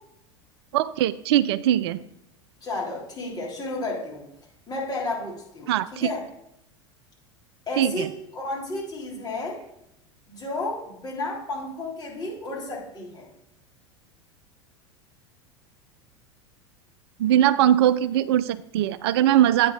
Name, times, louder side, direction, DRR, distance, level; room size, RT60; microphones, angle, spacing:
voice 1, 0.7-2.0 5.7-6.1 7.8-8.1 17.2-19.7, right 12 dB, 60° right, 16 dB, 0.4 m, -21 dB
voice 2, 2.6-4.2 4.7-5.7 6.0-6.2 7.7-8.1 8.3-9.6 10.3-13.3, left 2 dB, 25° left, -4 dB, 3.5 m, -32 dB
8.5 x 4.4 x 5.5 m, 0.80 s
figure-of-eight pair, 80°, 16 cm